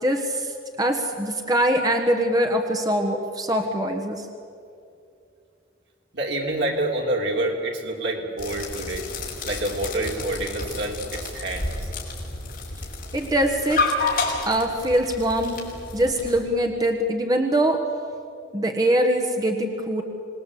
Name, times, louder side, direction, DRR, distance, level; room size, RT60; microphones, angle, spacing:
voice 1, 0.0-4.3 13.1-13.9 14.4-15.6 15.9-17.9 18.5-20.0, right 1 dB, 20° right, 4 dB, 1.4 m, -23 dB
voice 2, 6.1-9.1 9.4-11.7, right 1 dB, 70° right, 0 dB, 3.6 m, -27 dB
sound 1, 8.4-16.4, left 3 dB, 55° left, 5.1 m, -30 dB
26.5 x 20.5 x 8.4 m, 2.5 s
head